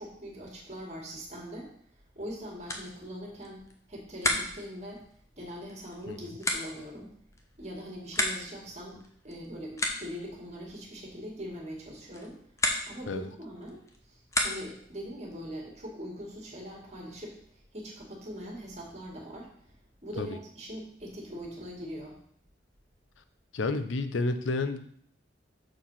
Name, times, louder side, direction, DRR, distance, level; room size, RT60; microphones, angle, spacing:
voice 1, 0.0-1.7 2.2-5.0 5.4-7.1 7.6-12.4 12.9-13.8 14.1-22.2, equal, 35° right, -1 dB, 2.2 m, -42 dB
sound 1, 2.1-14.9, left 2 dB, 15° left, 0.9 m, -36 dB
voice 2, 23.5-24.9, left 3 dB, 90° left, 10 dB, 0.6 m, -31 dB
6.7 x 4.7 x 5.6 m, 0.62 s
head